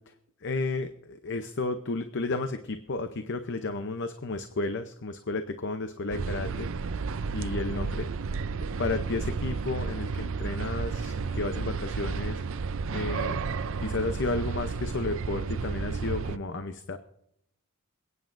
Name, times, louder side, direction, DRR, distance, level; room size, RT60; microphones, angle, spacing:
voice 1, 0.4-6.7 7.3-8.4 8.8-12.4 12.9-13.4 13.8-17.0, left 3 dB, 55° left, 8 dB, 0.7 m, -32 dB
sound 1, 6.1-16.4, right 4 dB, 60° right, 0.5 m, -32 dB
28.0 x 9.4 x 2.6 m, 0.75 s
head